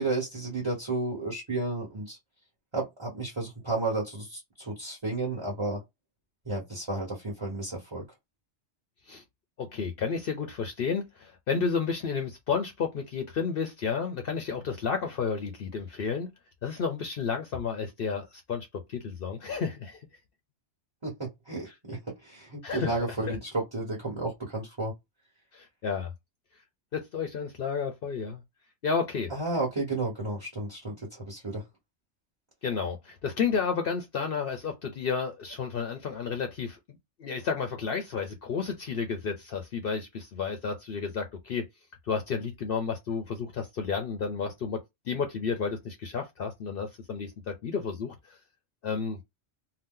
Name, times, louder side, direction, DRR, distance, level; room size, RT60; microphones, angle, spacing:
voice 1, 0.0-2.2 2.7-5.8 6.4-8.1 21.0-24.9 29.3-31.6, right 2 dB, 25° right, 1.0 m, -32 dB
voice 2, 9.6-16.3 16.6-20.0 22.6-22.9 23.3-23.4 25.5-26.1 26.9-28.4 28.8-29.3 32.6-41.7 42.1-48.4 48.8-49.2, left 5 dB, 60° left, 0.7 m, -31 dB
2.8 x 2.1 x 3.6 m
omnidirectional pair, 1.2 m